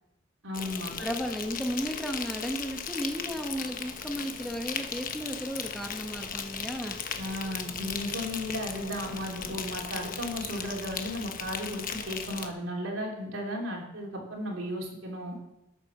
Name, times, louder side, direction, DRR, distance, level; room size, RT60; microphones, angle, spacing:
voice 1, 0.4-0.9 7.1-15.4, equal, 85° right, -1 dB, 3.3 m, -35 dB
Insect, 0.5-12.5, left 6 dB, 45° left, 1.0 m, -37 dB
voice 2, 1.0-7.0, equal, ahead, 3 dB, 1.0 m, -34 dB
13.0 x 8.3 x 6.1 m, 0.89 s
head